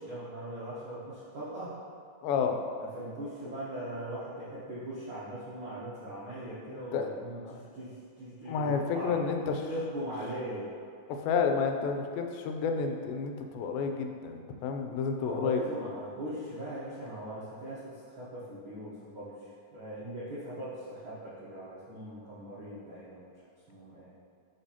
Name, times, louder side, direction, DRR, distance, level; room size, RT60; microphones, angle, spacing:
voice 1, 0.0-1.7 2.8-9.3 9.7-10.7 15.2-23.3 23.7-24.1, right 1 dB, 75° right, -10 dB, 1.2 m, -40 dB
voice 2, 2.2-2.6 6.7-7.1 7.5-7.6 8.5-9.7 11.1-15.6, left 5 dB, 90° left, 4 dB, 2.4 m, -30 dB
10.0 x 4.8 x 2.8 m, 2.4 s
omnidirectional pair, 4.1 m